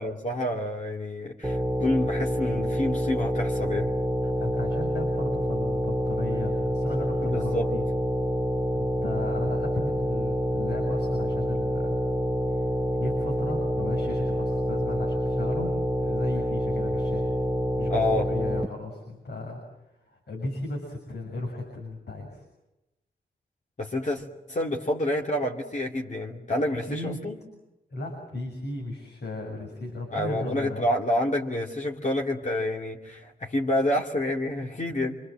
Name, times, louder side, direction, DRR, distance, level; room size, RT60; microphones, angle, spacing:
voice 1, 0.0-3.9 7.2-7.6 17.9-18.3 23.8-27.4 30.1-35.2, left 1 dB, 45° left, -1 dB, 2.7 m, -28 dB
sound 1, 1.4-18.7, equal, 5° right, 1.1 m, -27 dB
voice 2, 4.2-7.8 8.7-12.0 12.5-15.7 16.0-17.3 17.8-19.6 20.0-22.4 26.7-27.2 27.9-30.8, left 2 dB, 80° left, 2 dB, 6.9 m, -36 dB
28.0 x 25.0 x 7.7 m, 0.95 s
cardioid pair, 70°, 17 cm